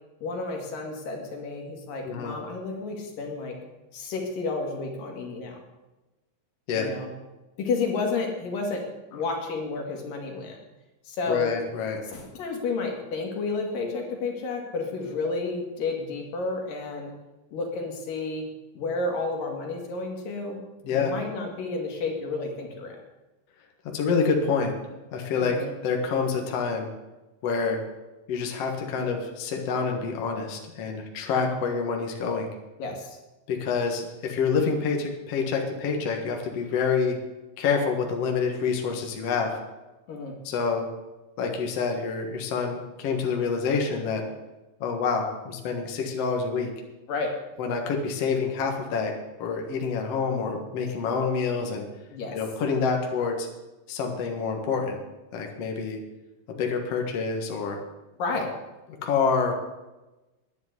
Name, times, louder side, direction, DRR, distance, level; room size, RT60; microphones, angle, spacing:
voice 1, 0.2-3.6 3.9-5.6 6.7-7.1 7.6-8.8 9.1-10.6 11.1-11.5 12.0-17.1 17.5-18.5 18.8-20.6 20.9-23.0 25.4-25.7 31.3-31.6 32.8-33.2 40.1-40.4 47.1-47.3 52.1-52.4 58.2-58.5, left 3 dB, 75° left, 1 dB, 3.7 m, -31 dB
voice 2, 2.0-2.4 6.7-6.9 11.3-12.0 20.8-21.1 23.9-24.7 25.1-25.6 25.8-26.9 27.4-27.8 28.3-32.5 33.5-37.2 37.6-39.5 40.4-40.8 41.4-44.2 44.8-46.7 47.6-49.1 49.4-51.8 52.3-53.5 53.9-55.0 55.3-56.0 56.6-57.8 59.0-59.5, left 5 dB, 55° left, 2 dB, 2.2 m, -27 dB
10.0 x 10.0 x 8.1 m, 1.1 s
omnidirectional pair, 4.0 m